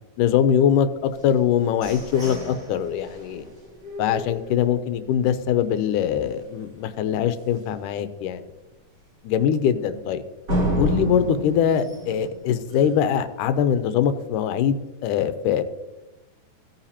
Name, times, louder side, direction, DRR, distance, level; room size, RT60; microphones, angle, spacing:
voice 1, 0.2-3.5 4.0-8.5 9.2-10.2 10.8-15.6, left 9 dB, 85° left, 11 dB, 2.2 m, -22 dB
sound 1, 1.2-5.1 5.5-5.6 6.0-6.4 6.8-6.9 7.4-7.5 10.5-13.1, right 1 dB, 35° right, 3.0 m, -31 dB
16.5 x 9.0 x 2.9 m, 1.1 s
omnidirectional pair, 3.8 m